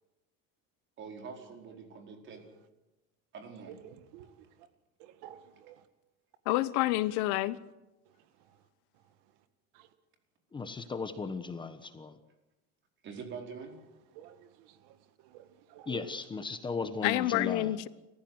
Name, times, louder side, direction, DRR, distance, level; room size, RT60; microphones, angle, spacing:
voice 1, 1.0-2.4 3.3-3.7 11.7-11.9 13.0-13.7 17.2-17.3, right 5 dB, 40° right, 4.7 m, -45 dB
voice 2, 3.6-4.7 5.0-5.8 8.1-8.6 9.0-9.1 9.7-9.9 14.1-16.1, right 11 dB, 80° right, 2.0 m, -52 dB
voice 3, 6.5-7.6 17.0-17.9, left 17 dB, 85° left, 1.1 m, -28 dB
voice 4, 10.5-12.2 15.9-17.7, left 4 dB, 15° left, 1.2 m, -36 dB
29.0 x 15.0 x 8.0 m
cardioid pair, 155°, 30 cm